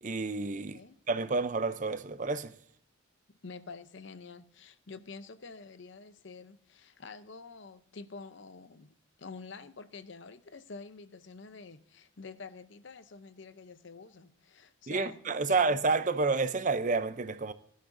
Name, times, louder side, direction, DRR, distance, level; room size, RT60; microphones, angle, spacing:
voice 1, 0.0-2.5 14.9-17.5, right 3 dB, 35° right, 0.6 m, -30 dB
voice 2, 3.4-15.2 15.5-15.6, left 4 dB, 55° left, 0.7 m, -48 dB
16.5 x 12.0 x 2.6 m
head